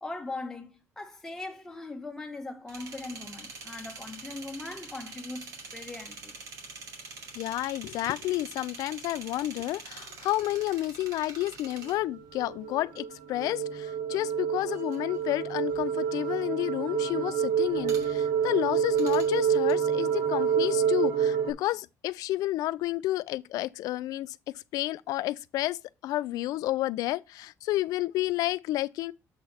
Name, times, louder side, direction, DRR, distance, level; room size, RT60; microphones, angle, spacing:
voice 1, 0.0-6.3, left 2 dB, 5° left, 1.2 m, -40 dB
sound 1, 2.7-13.5 13.7-19.7, right 4 dB, 65° right, 2.6 m, -45 dB
voice 2, 7.3-24.4 24.7-25.8 26.0-29.1, left 16 dB, 85° left, 0.4 m, -30 dB
sound 2, 11.9-21.5, right 7 dB, 85° right, 1.9 m, -28 dB
7.5 x 4.1 x 5.8 m
cardioid pair, 180°, 6 cm